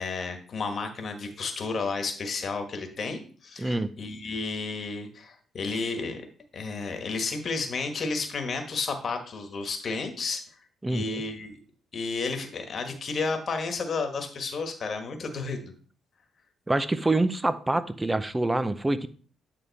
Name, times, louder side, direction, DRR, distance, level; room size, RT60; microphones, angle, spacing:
voice 1, 0.0-6.2 6.5-10.4 10.9-11.6 11.9-15.7, left 4 dB, 50° left, 5 dB, 1.4 m, -32 dB
voice 2, 3.6-3.9 10.8-11.2 16.7-19.1, right 2 dB, 15° right, 12 dB, 0.6 m, -26 dB
9.1 x 3.6 x 4.1 m, 0.43 s
cardioid pair, 90°, 0 cm